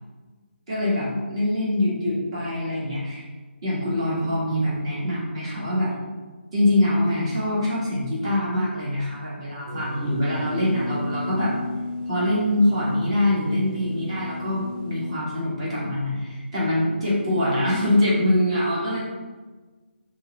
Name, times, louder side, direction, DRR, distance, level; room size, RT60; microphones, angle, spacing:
voice 1, 0.7-3.3 3.6-5.9 6.5-11.5 12.1-19.0, left 1 dB, 30° right, -7 dB, 1.8 m, -24 dB
sound 1, 9.7-15.1, left 1 dB, 5° right, 1.0 m, -34 dB
5.3 x 3.3 x 5.4 m, 1.3 s
hypercardioid pair, 175°, 6 cm